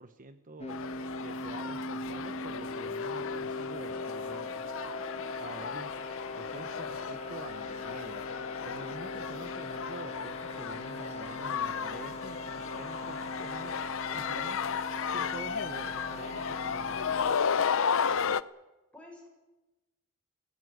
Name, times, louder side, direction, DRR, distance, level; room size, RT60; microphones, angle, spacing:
voice 1, 0.0-4.6 5.4-5.9 6.3-8.3 8.7-13.8 14.1-14.6 15.1-17.0, right 2 dB, 40° right, 9 dB, 1.1 m, -47 dB
sound 1, 0.6-17.3, left 2 dB, 30° left, 1.7 m, -40 dB
sound 2, 0.7-18.4, left 7 dB, 65° left, 0.7 m, -34 dB
voice 2, 14.1-14.4 18.9-19.3, left 2 dB, 5° left, 0 dB, 6.7 m, -50 dB
20.0 x 17.5 x 9.5 m, 1.1 s
head